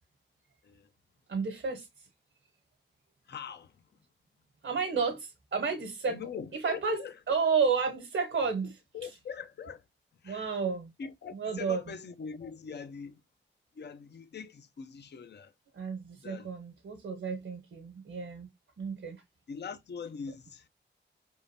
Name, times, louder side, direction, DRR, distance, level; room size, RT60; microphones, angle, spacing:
voice 1, 1.3-1.9 4.6-6.2 6.5-8.8 10.2-10.9 11.3-11.8 15.7-18.5 18.8-19.2, right 5 dB, 75° right, 1.1 m, -31 dB
voice 2, 3.3-3.7 6.1-7.2 8.9-9.8 10.2-10.5 11.0-13.2 13.8-15.5 16.2-16.5 19.5-20.7, left 6 dB, 60° left, 0.6 m, -42 dB
5.1 x 3.6 x 2.6 m
cardioid pair, 75°, 20 cm